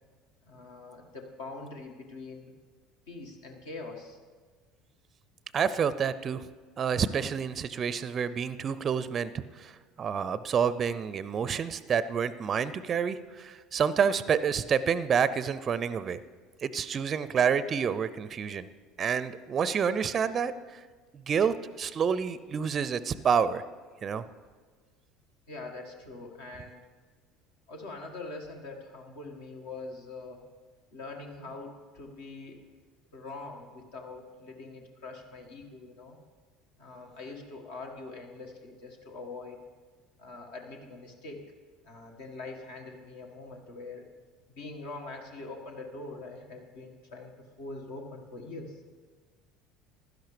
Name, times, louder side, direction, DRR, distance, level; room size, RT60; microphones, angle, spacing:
voice 1, 0.5-2.5 3.1-4.2 25.5-26.8 27.7-30.4 30.9-32.6 33.1-36.2 36.8-39.6 40.2-41.4 41.8-44.1 44.5-48.8, left 3 dB, 70° left, 2 dB, 1.6 m, -43 dB
voice 2, 5.5-6.5 6.8-16.2 16.6-18.7 19.0-20.8 21.1-23.6 24.0-24.2, right 7 dB, 40° right, 16 dB, 0.4 m, -28 dB
15.5 x 11.5 x 3.3 m, 1.4 s
figure-of-eight pair, 65°, 0 cm